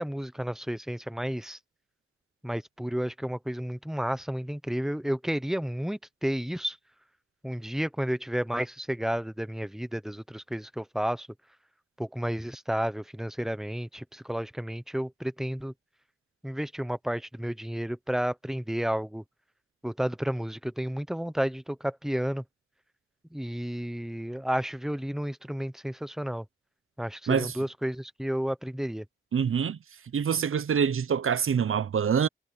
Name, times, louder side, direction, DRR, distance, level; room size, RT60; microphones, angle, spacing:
voice 1, 0.0-1.6 2.4-6.8 7.4-11.3 12.0-15.7 16.4-19.2 19.8-22.4 23.3-26.4 27.0-29.0, equal, ahead, 0.9 m, -31 dB
voice 2, 29.3-29.8 30.1-32.3, right 7 dB, 85° right, 0.6 m, -25 dB
wide cardioid pair, 90°, 21 cm